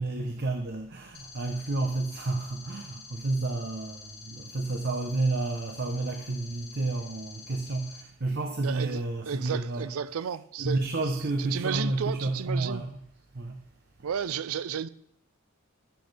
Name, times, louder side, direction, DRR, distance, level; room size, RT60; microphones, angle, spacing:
voice 1, 0.0-9.9 10.6-13.0 13.3-13.6, right 2 dB, 50° right, 0.8 m, -30 dB
sound 1, 1.1-8.0, left 4 dB, 50° left, 1.7 m, -48 dB
voice 2, 8.6-9.0 9.3-10.8 11.4-12.8 14.0-14.9, right 7 dB, 85° right, 0.4 m, -33 dB
10.5 x 10.0 x 3.4 m
head